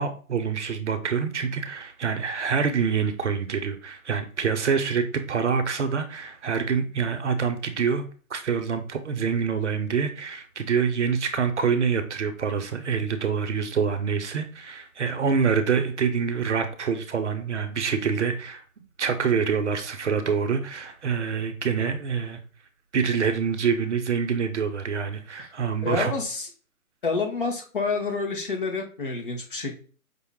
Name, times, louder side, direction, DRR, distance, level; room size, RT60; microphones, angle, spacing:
voice 1, 0.0-8.0 8.3-18.6 19.0-22.4 22.9-26.1, right 6 dB, 55° right, 7 dB, 0.6 m, -26 dB
voice 2, 25.8-26.5 27.0-29.7, left 4 dB, 35° left, 2 dB, 1.0 m, -28 dB
5.3 x 2.0 x 3.6 m, 0.39 s
hypercardioid pair, 165°, 44 cm